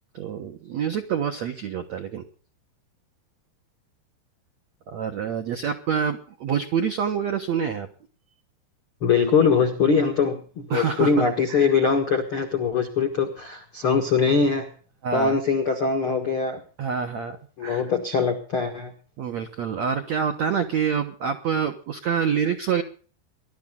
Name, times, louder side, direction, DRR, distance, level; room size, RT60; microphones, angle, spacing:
voice 1, 0.1-2.2 4.9-7.9 10.7-11.7 15.0-15.4 16.8-17.4 17.6-17.9 19.2-22.8, right 7 dB, 85° right, 5 dB, 1.5 m, -27 dB
voice 2, 9.0-14.7 15.1-16.6 17.6-18.9, left 5 dB, 70° left, 5 dB, 1.2 m, -22 dB
22.0 x 12.5 x 3.9 m, 0.40 s
omnidirectional pair, 5.4 m